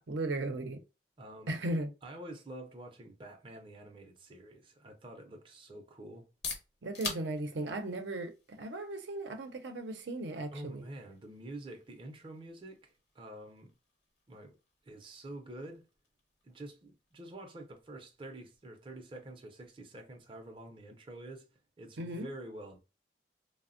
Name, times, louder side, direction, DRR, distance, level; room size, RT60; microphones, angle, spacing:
voice 1, 0.1-0.8 1.5-1.9 6.8-10.8 22.0-22.3, right 2 dB, 90° right, 0.6 m, -36 dB
voice 2, 1.2-1.6 2.0-6.3 10.5-13.7 14.3-14.6 14.8-15.9 16.4-21.4 21.8-22.8, right 1 dB, 30° right, 0.5 m, -47 dB
sound 1, 6.1-21.8, left 4 dB, 70° left, 0.9 m, -50 dB
3.3 x 2.0 x 2.4 m
head